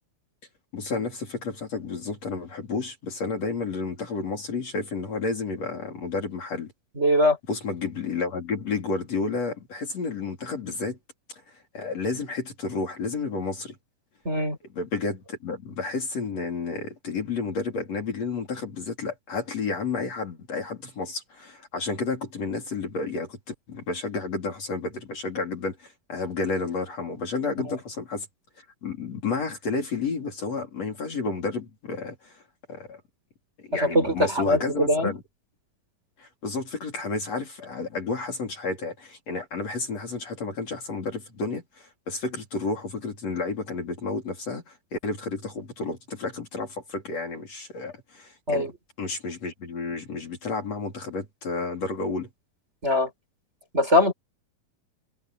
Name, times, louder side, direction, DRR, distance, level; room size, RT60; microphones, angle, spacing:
voice 1, 0.7-6.7 7.5-11.0 11.7-13.7 14.7-28.3 28.8-32.3 32.7-33.0 33.7-35.2 36.2-48.7 49.0-52.3, left 4 dB, 45° left, 4.7 m, -31 dB
voice 2, 7.0-7.4 14.2-14.6 27.6-27.7 33.8-35.1 48.5-48.7 52.8-53.1 53.7-54.1, left 1 dB, 15° right, 4.8 m, -22 dB
omnidirectional pair, 4.2 m